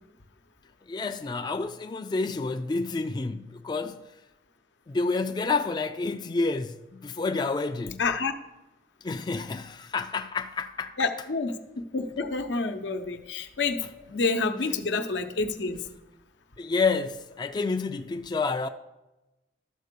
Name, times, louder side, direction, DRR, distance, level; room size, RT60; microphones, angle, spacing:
voice 1, 0.9-4.1 4.9-8.0 9.0-11.0 16.6-18.7, left 4 dB, 25° left, 0.3 m, -29 dB
voice 2, 8.0-8.3 11.0-15.8, left 3 dB, 85° left, 0.8 m, -28 dB
12.0 x 4.5 x 6.7 m
head